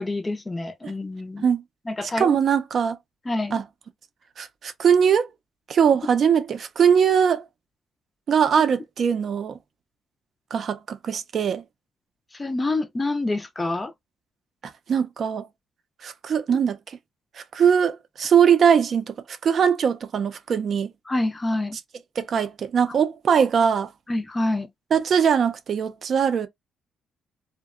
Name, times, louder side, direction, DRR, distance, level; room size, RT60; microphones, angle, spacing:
voice 1, 0.0-1.5 1.9-2.4 3.3-3.6 12.3-13.9 21.1-21.8 24.1-24.7, left 2 dB, 20° left, 0.4 m, -27 dB
voice 2, 2.2-3.0 3.5-3.6 4.4-5.3 5.7-7.5 8.3-9.6 10.5-11.6 14.9-15.5 16.0-17.0 17.5-20.9 22.2-23.9 24.9-26.5, right 7 dB, 55° right, 0.4 m, -21 dB
2.7 x 2.1 x 2.3 m
cardioid pair, 90°, 0 cm